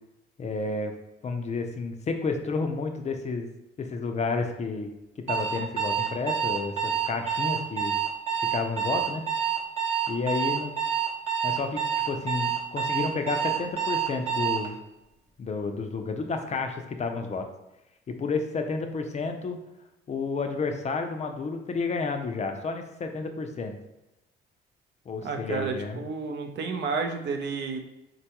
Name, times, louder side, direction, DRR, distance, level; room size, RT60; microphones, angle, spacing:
voice 1, 0.4-0.9 1.2-3.5 3.8-4.9 5.3-7.9 8.5-9.2 10.1-10.7 11.4-14.8 15.4-17.5 18.1-19.6 20.1-23.8 25.1-26.0, left 4 dB, 35° left, 5 dB, 0.4 m, -31 dB
Alarm, 5.3-14.7, right 8 dB, 30° right, 0.7 m, -27 dB
voice 2, 25.2-27.8, right 4 dB, 65° right, 5 dB, 0.5 m, -31 dB
3.8 x 2.2 x 2.8 m, 0.95 s
cardioid pair, 90°, 20 cm